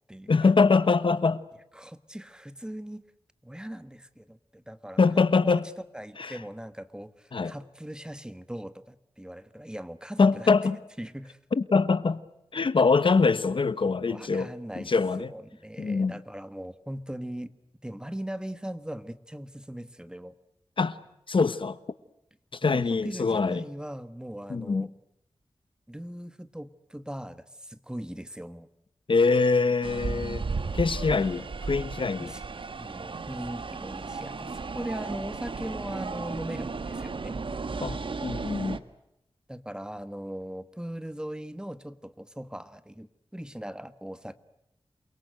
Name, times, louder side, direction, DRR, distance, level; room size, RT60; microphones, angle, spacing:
voice 1, 0.3-1.4 5.0-5.6 6.2-6.4 7.3-7.5 10.2-10.8 11.5-12.2 12.5-14.5 14.7-15.3 15.8-16.2 20.8-21.0 21.3-21.8 22.5-23.6 24.5-24.9 29.1-30.5 30.7-32.3 37.8-38.8, left 4 dB, 65° left, 15 dB, 1.2 m, -24 dB
voice 2, 1.7-3.0 3.4-5.6 5.9-10.5 11.0-11.4 14.1-14.9 15.3-17.5 17.8-20.3 22.6-24.9 25.9-28.7 32.2-32.4 32.8-37.4 39.5-44.4, right 1 dB, 10° right, 12 dB, 1.5 m, -39 dB
sound 1, 29.8-38.8, right 4 dB, 65° right, 1.4 m, -35 dB
28.5 x 23.5 x 7.9 m, 0.82 s
wide cardioid pair, 90°, 9 cm